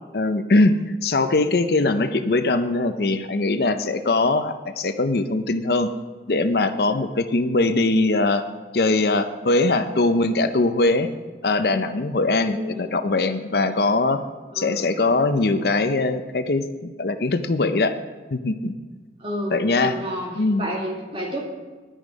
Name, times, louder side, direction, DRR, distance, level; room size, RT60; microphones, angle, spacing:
voice 1, 0.1-0.7 1.0-5.9 6.3-8.4 8.7-11.1 11.4-14.2 14.5-18.0 18.3-18.7 19.5-19.9 20.4-20.6, left 2 dB, 60° left, 9 dB, 0.6 m, -21 dB
voice 2, 12.4-12.9 14.5-14.9 19.2-20.3 20.6-21.4, equal, 30° right, -2 dB, 2.3 m, -30 dB
10.5 x 10.0 x 5.1 m, 1.3 s
head